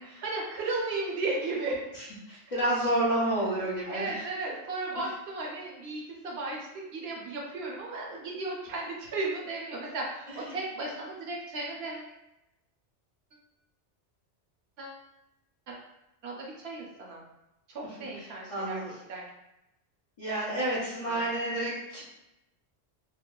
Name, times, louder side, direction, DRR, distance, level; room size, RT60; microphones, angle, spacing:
voice 1, 0.2-1.8 3.9-12.1 14.8-15.0 15.7-15.8 16.2-17.2 17.7-18.8 19.1-19.2 21.0-21.2, right 2 dB, 70° right, -2 dB, 0.8 m, -35 dB
voice 2, 2.0-4.3 4.9-5.0 10.3-10.6 18.1-18.9 20.2-22.0, right 1 dB, 45° left, -9 dB, 0.4 m, -30 dB
2.8 x 2.1 x 2.2 m, 0.90 s
omnidirectional pair, 1.2 m